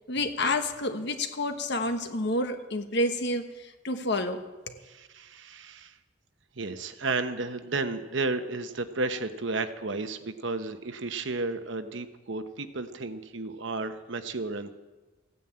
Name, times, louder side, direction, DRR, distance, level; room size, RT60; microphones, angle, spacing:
voice 1, 0.1-4.4 4.7-4.8, left 1 dB, 60° left, 7 dB, 1.3 m, -29 dB
voice 2, 4.8-5.9 6.5-14.7, right 3 dB, 65° right, 9 dB, 1.0 m, -33 dB
15.5 x 9.4 x 8.8 m, 1.2 s
head